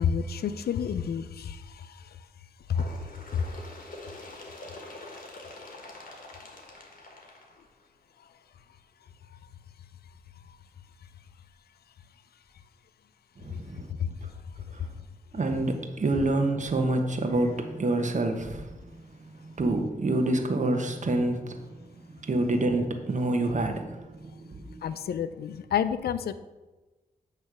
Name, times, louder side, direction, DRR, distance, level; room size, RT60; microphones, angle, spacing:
voice 1, 0.0-2.2 2.7-3.0 3.3-3.5 13.5-13.6 14.0-14.2 14.8-14.9 24.8-26.3, left 7 dB, 75° left, 0.4 m, -29 dB
Bird, 2.7-8.1 9.0-9.1 9.5-9.6 10.5-10.6 11.5-11.6 12.5-12.6, left 2 dB, 60° left, 1.5 m, -45 dB
voice 2, 13.4-13.9 14.2-14.3 14.7-14.9 15.3-19.0 19.4-24.8, right 2 dB, 50° right, 1.1 m, -28 dB
8.3 x 3.2 x 6.0 m
cardioid pair, 60°, 16 cm